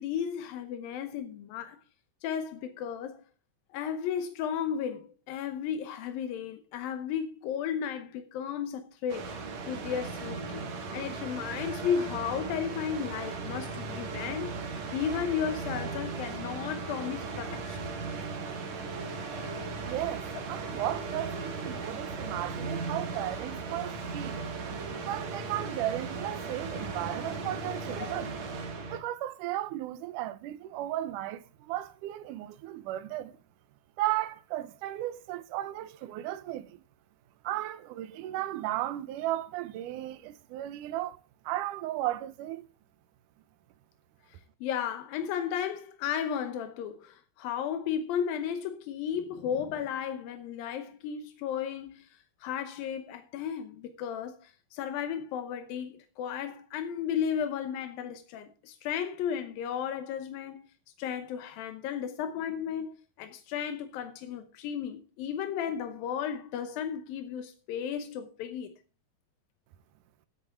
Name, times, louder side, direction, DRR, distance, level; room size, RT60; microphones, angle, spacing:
voice 1, 0.0-1.8 2.2-3.2 3.7-9.4 9.7-10.6 10.9-14.6 14.9-17.9 24.9-25.0 28.0-28.1 44.6-60.6 61.0-68.7, left 8 dB, 85° left, 2.7 m, -34 dB
sound 1, 9.1-29.0, right 4 dB, 60° right, 2.6 m, -37 dB
voice 2, 19.8-24.5 25.0-28.3 28.9-33.4 34.0-36.8 37.4-41.2 41.4-42.7, right 14 dB, 75° right, 2.2 m, -35 dB
16.0 x 8.4 x 3.5 m
omnidirectional pair, 4.0 m